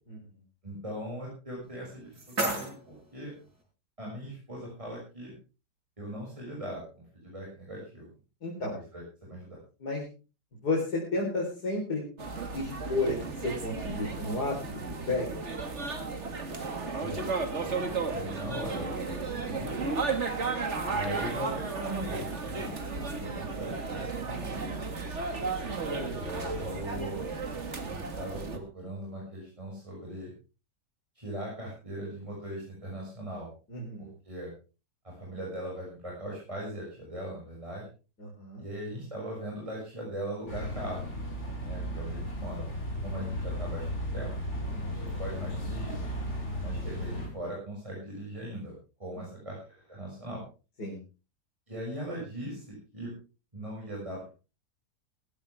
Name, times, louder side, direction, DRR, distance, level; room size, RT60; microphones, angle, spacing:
voice 1, 0.6-3.3 4.0-5.3 6.0-8.1 8.9-9.6 17.0-19.9 20.9-22.8 23.0-24.6 26.2-27.4 27.7-30.3 31.1-33.5 34.0-34.5 35.0-37.9 38.6-41.1 41.6-42.6 43.0-44.3 44.9-46.0 46.6-48.7 49.0-50.4 51.7-53.1 53.5-54.3, right 1 dB, 20° right, -4 dB, 6.7 m, -40 dB
sound 1, 1.6-3.6, right 2 dB, 70° right, 6.9 m, -35 dB
voice 2, 8.4-8.8 9.8-10.0 10.6-12.0 12.5-15.3 23.2-23.4 25.4-25.5 33.7-34.1 38.2-38.6 44.6-44.9 50.8-51.0, left 2 dB, 80° left, -3 dB, 4.7 m, -32 dB
sound 2, 12.2-28.6, right 4 dB, 45° right, 2.2 m, -34 dB
sound 3, 40.5-47.3, equal, 45° left, 4.7 m, -35 dB
17.0 x 15.0 x 3.5 m, 0.32 s
omnidirectional pair, 1.7 m